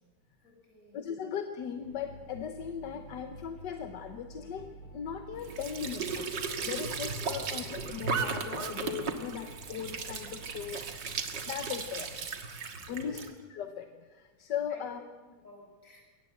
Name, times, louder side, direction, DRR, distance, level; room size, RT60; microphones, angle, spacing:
voice 1, 0.4-1.0 12.9-13.3 14.4-14.9 15.2-16.0, left 2 dB, 35° left, 0 dB, 6.7 m, -56 dB
voice 2, 0.9-10.8 11.4-12.1 12.9-13.2 13.5-15.0, left 8 dB, 60° left, 7 dB, 1.4 m, -38 dB
sound 1, 1.7-12.2, right 3 dB, 80° right, 8.3 m, -51 dB
Squeak / Sink (filling or washing) / Trickle dribble, 5.4-13.3, right 5 dB, 55° right, 2.3 m, -36 dB
22.0 x 18.5 x 7.8 m, 1.4 s
omnidirectional pair, 2.3 m